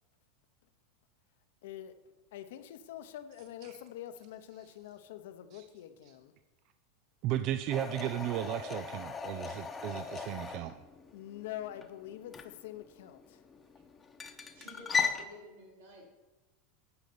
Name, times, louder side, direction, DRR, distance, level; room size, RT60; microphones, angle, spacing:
voice 1, 1.6-1.9 2.3-6.3 11.1-13.4, left 12 dB, 75° left, 10 dB, 0.8 m, -45 dB
voice 2, 7.2-10.7, right 12 dB, 55° right, 10 dB, 0.4 m, -35 dB
sound 1, 7.7-15.2, left 5 dB, 20° left, 0.9 m, -38 dB
voice 3, 14.5-16.1, equal, 85° right, -2 dB, 3.6 m, -51 dB
9.7 x 5.1 x 6.9 m, 1.2 s
hypercardioid pair, 110°, 0 cm